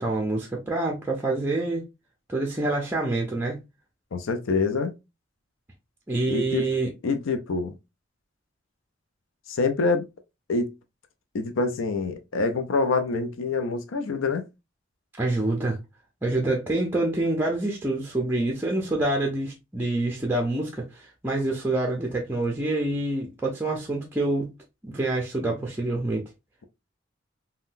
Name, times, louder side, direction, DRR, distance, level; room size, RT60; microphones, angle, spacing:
voice 1, 0.0-1.8 2.3-3.6 6.1-6.9 15.2-15.8 16.2-24.5 24.8-26.3, right 2 dB, 10° right, 0.5 m, -26 dB
voice 2, 4.1-4.9 6.3-6.6 7.0-7.7 9.5-10.1 10.5-10.7 11.3-14.4, left 3 dB, 90° left, 0.5 m, -26 dB
3.7 x 2.2 x 2.5 m
head